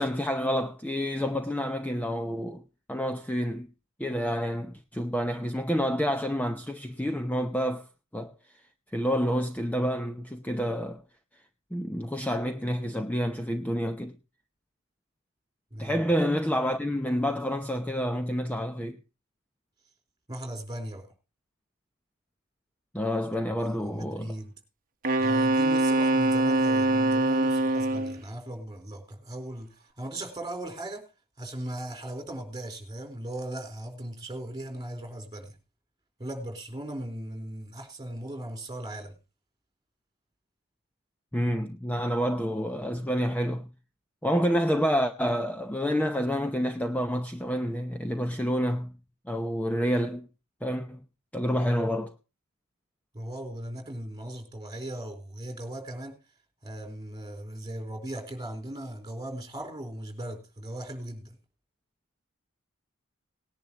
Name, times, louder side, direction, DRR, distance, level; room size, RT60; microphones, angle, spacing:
voice 1, 0.0-2.6 2.9-3.7 4.0-7.9 8.1-8.3 8.9-11.0 11.7-14.1 15.8-19.0 22.9-24.3 41.3-43.7 44.2-48.9 49.3-50.3 50.6-51.0 51.3-52.1, equal, 5° left, 0.7 m, -28 dB
voice 2, 15.7-16.0 20.3-21.1 23.6-24.5 25.2-31.1 31.4-35.5 36.2-39.1 53.1-56.2 56.6-61.4, right 1 dB, 20° right, 4.1 m, -38 dB
Wind instrument woodwind instrument, 25.0-28.2, right 2 dB, 40° right, 1.1 m, -23 dB
19.0 x 10.5 x 2.9 m
head